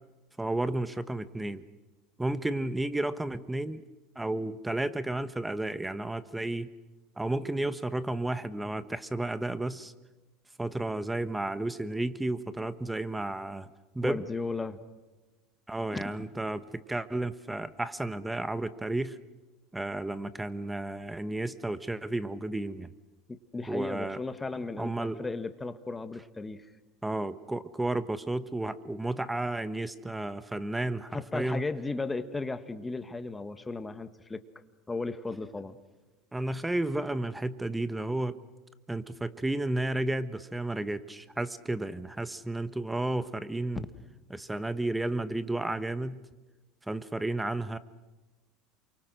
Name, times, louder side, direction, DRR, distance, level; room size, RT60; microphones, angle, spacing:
voice 1, 0.4-1.6 2.2-3.8 4.1-6.7 7.2-9.9 10.6-13.7 13.9-14.2 15.7-19.2 19.7-22.9 23.7-24.2 24.8-25.2 27.0-31.6 36.3-38.4 38.9-43.8 44.3-46.3 46.9-47.8, right 2 dB, 10° right, 13 dB, 1.2 m, -32 dB
voice 2, 14.0-14.8 15.9-16.3 23.3-26.7 31.1-34.4 34.9-35.8, left 3 dB, 15° left, 10 dB, 1.6 m, -35 dB
28.0 x 24.5 x 6.3 m, 1.2 s
hypercardioid pair, 90°, 0 cm